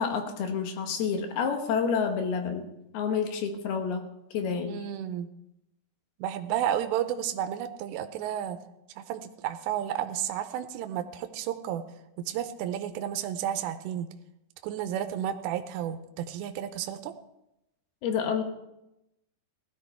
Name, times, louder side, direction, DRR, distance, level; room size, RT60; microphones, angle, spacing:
voice 1, 0.0-2.7 2.9-4.0 4.3-4.7 18.0-18.4, left 6 dB, 70° left, 5 dB, 3.1 m, -29 dB
voice 2, 4.7-5.3 6.2-8.6 9.0-11.8 12.2-14.1 14.6-17.1, right 10 dB, 80° right, 8 dB, 2.9 m, -32 dB
17.0 x 13.0 x 4.5 m, 0.87 s
omnidirectional pair, 5.0 m